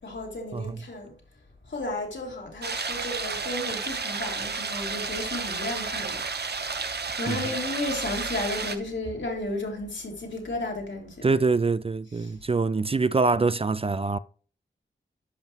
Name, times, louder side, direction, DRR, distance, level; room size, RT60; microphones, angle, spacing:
voice 1, 0.0-1.2 1.6-11.3 12.1-12.4, left 2 dB, 70° left, 2.7 m, -34 dB
sound 1, 2.6-8.8, right 4 dB, 55° right, 0.9 m, -32 dB
voice 2, 11.2-14.2, right 4 dB, 30° right, 0.4 m, -24 dB
10.5 x 5.4 x 3.0 m
cardioid pair, 40°, 20 cm